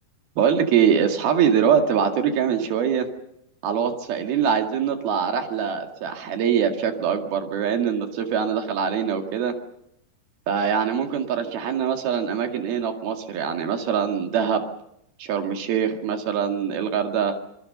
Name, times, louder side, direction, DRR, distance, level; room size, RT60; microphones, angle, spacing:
voice 1, 0.4-3.1 3.6-9.5 10.5-14.6 15.2-17.3, right 7 dB, 65° right, 5 dB, 3.8 m, -23 dB
26.5 x 22.5 x 6.8 m, 0.78 s
omnidirectional pair, 5.0 m